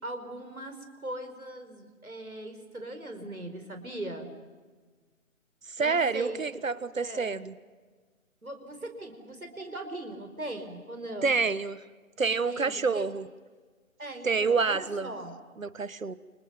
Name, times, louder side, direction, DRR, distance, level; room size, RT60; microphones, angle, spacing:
voice 1, 0.0-4.3 5.8-6.6 7.0-7.3 8.4-11.3 12.2-13.1 14.0-15.4, right 1 dB, 90° right, 5 dB, 4.9 m, -39 dB
voice 2, 5.6-7.5 11.2-11.8 12.2-13.3 14.2-15.1 15.6-16.1, right 4 dB, 70° right, 16 dB, 1.4 m, -28 dB
29.5 x 27.5 x 6.0 m, 1.4 s
figure-of-eight pair, 145°, 41 cm